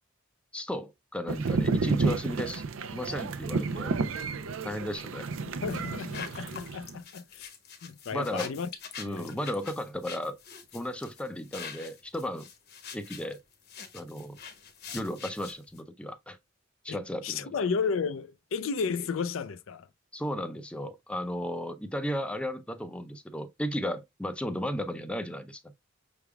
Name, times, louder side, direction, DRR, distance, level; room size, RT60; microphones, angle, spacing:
voice 1, 0.5-2.6 2.9-3.9 4.6-5.3 8.1-8.5 9.0-10.4 10.7-12.5 12.9-13.4 13.9-14.4 14.9-16.4 16.8-17.6 20.1-25.8, equal, 5° left, 0.4 m, -34 dB
sound 1, 1.3-7.0, right 4 dB, 85° right, 0.5 m, -31 dB
voice 2, 5.6-7.5 7.8-8.7 9.0-9.4 16.9-19.9, left 5 dB, 80° left, 0.4 m, -33 dB
sound 2, 5.7-15.8, left 6 dB, 55° left, 1.0 m, -45 dB
5.8 x 3.5 x 2.2 m
head